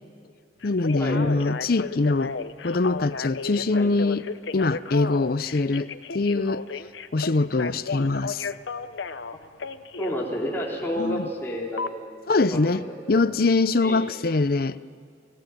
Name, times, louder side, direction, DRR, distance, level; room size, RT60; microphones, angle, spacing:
Telephone, 0.6-10.2 11.8-11.9, left 4 dB, 90° left, 0.9 m, -33 dB
voice 1, 0.6-2.3 2.6-4.2 4.5-5.9 6.1-6.6 7.1-8.4 11.0-11.3 12.3-14.8, left 3 dB, 55° left, 0.6 m, -23 dB
voice 2, 10.0-13.3 13.8-14.2, equal, 10° left, 3.4 m, -31 dB
30.0 x 17.5 x 9.2 m
head